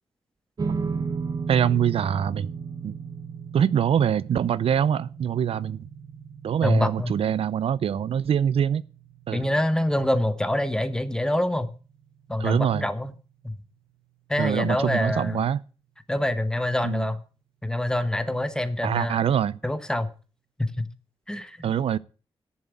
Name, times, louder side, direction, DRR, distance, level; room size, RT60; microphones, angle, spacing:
sound 1, 0.6-13.1, right 5 dB, 40° right, 0.9 m, -36 dB
voice 1, 1.5-2.5 2.8-2.9 3.5-5.8 6.4-8.8 9.3-9.4 12.4-12.9 14.4-15.6 16.8-17.1 18.8-19.6 21.6-22.0, right 9 dB, 75° right, 0.5 m, -24 dB
voice 2, 6.6-7.1 9.3-11.7 12.3-13.1 13.4-13.5 14.3-15.4 16.1-17.2 17.6-19.2 19.6-20.1 20.6-20.9 21.3-21.7, left 1 dB, 5° left, 1.2 m, -25 dB
10.5 x 7.3 x 8.4 m
wide cardioid pair, 135°, 10 cm